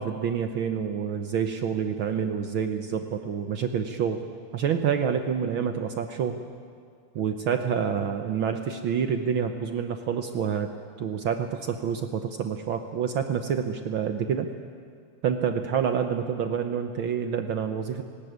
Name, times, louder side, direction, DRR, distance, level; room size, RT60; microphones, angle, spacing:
voice 1, 0.0-4.2 4.5-6.4 7.1-10.7 11.0-14.5 15.2-18.0, right 7 dB, 70° right, 6 dB, 1.2 m, -27 dB
19.0 x 18.5 x 9.4 m, 2.2 s
omnidirectional pair, 3.4 m